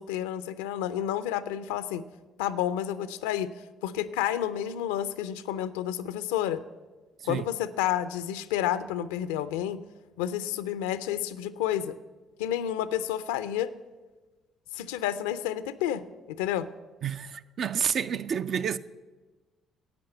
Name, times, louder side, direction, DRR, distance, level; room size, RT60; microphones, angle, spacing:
voice 1, 0.0-2.0 2.4-3.5 3.8-6.6 7.3-9.8 10.2-12.0 12.4-13.7 14.7-16.7, left 11 dB, 85° left, 0.4 m, -30 dB
voice 2, 7.2-7.5 17.0-18.8, right 7 dB, 60° right, 0.4 m, -29 dB
10.5 x 8.5 x 7.8 m
hypercardioid pair, 55°, 0 cm